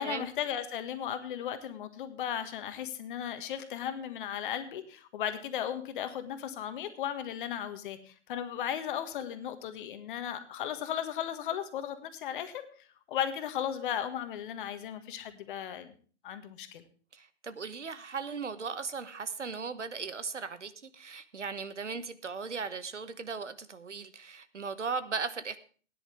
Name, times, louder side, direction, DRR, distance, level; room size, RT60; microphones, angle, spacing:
voice 1, 0.0-12.7 13.1-15.9 16.2-16.8, left 9 dB, 45° left, 9 dB, 1.5 m, -36 dB
voice 2, 17.1-25.6, right 5 dB, 85° right, 13 dB, 1.1 m, -37 dB
16.5 x 10.0 x 3.4 m, 0.41 s
figure-of-eight pair, 125°, 35 cm